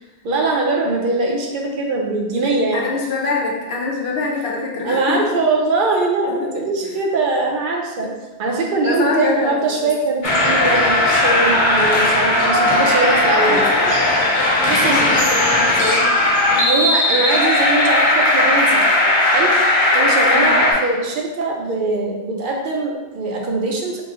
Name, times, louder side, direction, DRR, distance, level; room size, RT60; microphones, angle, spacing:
voice 1, 0.2-2.9 4.8-8.1 8.4-13.7 14.6-15.1 16.6-18.9 19.3-19.5 19.9-24.0, right 3 dB, 55° right, 0 dB, 0.7 m, -21 dB
voice 2, 2.7-5.2 6.3-7.0 8.0-8.1 8.8-9.9 13.3-14.1 14.8-16.1 16.5-16.7 20.3-20.6, left 3 dB, 65° left, -1 dB, 0.9 m, -25 dB
sound 1, 10.2-20.7, left 1 dB, 45° left, 0.9 m, -16 dB
3.0 x 2.6 x 3.6 m, 1.1 s
omnidirectional pair, 1.2 m